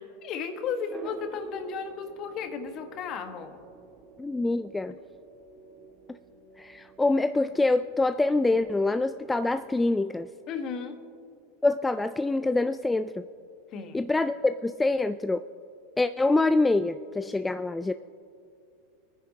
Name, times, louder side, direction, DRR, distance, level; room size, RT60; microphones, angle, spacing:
voice 1, 0.0-3.6 4.9-5.0 10.5-11.0 13.7-14.0, left 6 dB, 45° left, 7 dB, 1.4 m, -34 dB
sound 1, 0.9-10.0, right 5 dB, 35° right, 1.6 m, -50 dB
voice 2, 4.2-4.9 6.6-10.3 11.6-13.2 13.9-15.4 16.0-17.9, left 2 dB, 10° left, 10 dB, 0.3 m, -25 dB
25.0 x 10.0 x 2.8 m, 2.5 s
hypercardioid pair, 95°, 0 cm